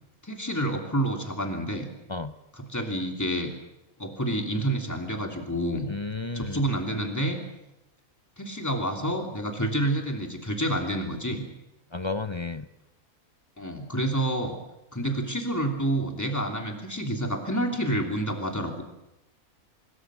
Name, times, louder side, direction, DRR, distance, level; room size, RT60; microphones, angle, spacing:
voice 1, 0.2-1.9 2.5-3.5 4.0-5.9 6.3-7.4 8.4-11.4 13.6-14.5 14.9-18.8, right 1 dB, 10° left, 3 dB, 3.1 m, -28 dB
voice 2, 5.9-6.6 11.9-12.7, left 3 dB, 25° left, 11 dB, 0.6 m, -32 dB
24.5 x 22.5 x 6.4 m, 0.93 s
omnidirectional pair, 1.4 m